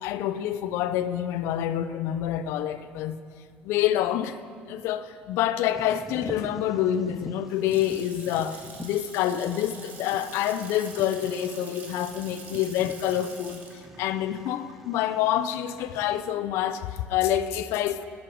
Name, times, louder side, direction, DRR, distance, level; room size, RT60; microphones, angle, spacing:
voice 1, 0.0-3.2 3.6-4.4 4.7-13.6 14.0-18.1, left 11 dB, 80° left, 0.5 m, -27 dB
Bird vocalization bird call bird song, 5.7-16.3, equal, 5° right, 0.6 m, -46 dB
Water tap faucet / Sink (filling or washing) / Splash splatter, 7.5-16.1, right 4 dB, 45° right, 1.5 m, -46 dB
16.0 x 6.3 x 4.6 m
cardioid pair, 120°, 4 cm